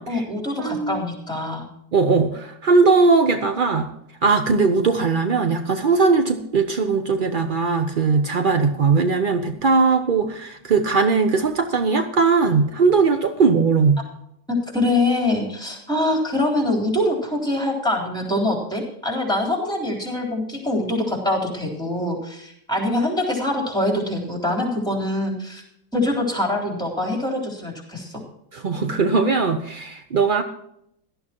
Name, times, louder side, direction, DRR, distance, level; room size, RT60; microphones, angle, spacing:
voice 1, 0.1-1.7 14.7-25.6 25.9-28.2, left 1 dB, ahead, 0 dB, 3.5 m, -24 dB
voice 2, 0.6-1.0 1.9-3.9 4.2-14.0 28.5-30.4, right 4 dB, 65° right, 7 dB, 0.5 m, -19 dB
17.0 x 12.0 x 3.0 m, 0.74 s
omnidirectional pair, 1.9 m